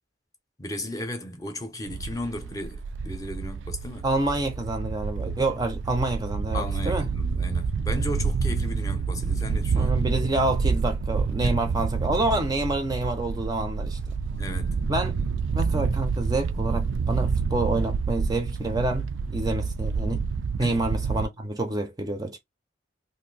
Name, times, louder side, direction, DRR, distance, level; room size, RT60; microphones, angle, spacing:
voice 1, 0.6-4.1 6.5-10.0 11.4-11.6 14.3-14.8 20.6-20.8, left 1 dB, 20° left, 0.7 m, -35 dB
sound 1, 1.9-21.3, right 5 dB, 85° right, 0.4 m, -28 dB
voice 2, 4.0-7.1 9.7-14.0 14.9-15.1 15.5-20.2 20.6-22.4, right 2 dB, 20° right, 0.5 m, -28 dB
2.7 x 2.6 x 3.9 m
head